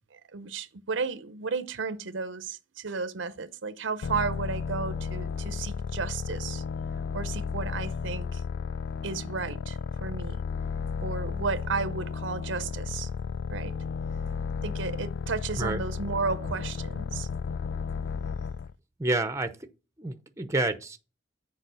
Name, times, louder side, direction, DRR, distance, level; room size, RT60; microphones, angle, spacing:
voice 1, 0.1-6.6 7.1-8.4 9.0-10.4 11.0-13.1 13.5-13.7 14.6-17.3, right 4 dB, 75° right, 0.7 m, -33 dB
sound 1, 4.0-18.7, left 5 dB, 60° left, 0.3 m, -33 dB
voice 2, 19.0-19.6 20.0-21.0, right 2 dB, 15° right, 0.7 m, -29 dB
6.8 x 4.8 x 6.2 m
head